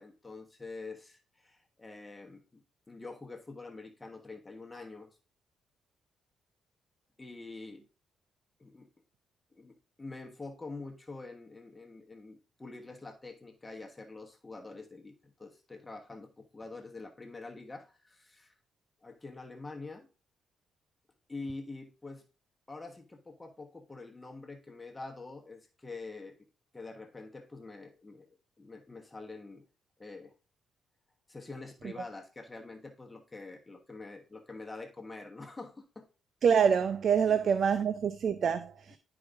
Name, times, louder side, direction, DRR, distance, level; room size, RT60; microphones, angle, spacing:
voice 1, 0.0-5.2 7.2-7.8 8.6-8.9 9.5-18.5 19.0-20.1 21.3-22.2 22.7-26.4 26.7-28.3 28.6-29.6 30.0-30.3 31.3-36.1 37.3-37.4, left 3 dB, 20° left, 1.3 m, -46 dB
voice 2, 36.4-39.0, right 7 dB, 55° right, 0.5 m, -26 dB
11.5 x 4.9 x 2.6 m
cardioid pair, 90°, 0 cm